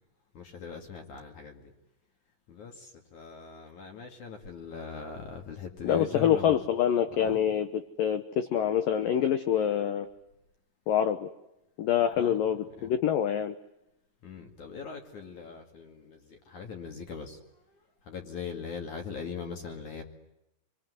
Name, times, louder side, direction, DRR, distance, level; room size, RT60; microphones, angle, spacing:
voice 1, 0.3-1.7 2.5-6.6 7.2-7.4 12.2-12.4 12.8-12.9 14.2-20.0, left 5 dB, 50° left, 4 dB, 3.0 m, -41 dB
voice 2, 5.8-7.7 8.0-10.1 10.9-11.3 11.8-13.5, left 9 dB, 85° left, 10 dB, 1.9 m, -26 dB
27.5 x 22.5 x 9.6 m, 0.88 s
omnidirectional pair, 5.6 m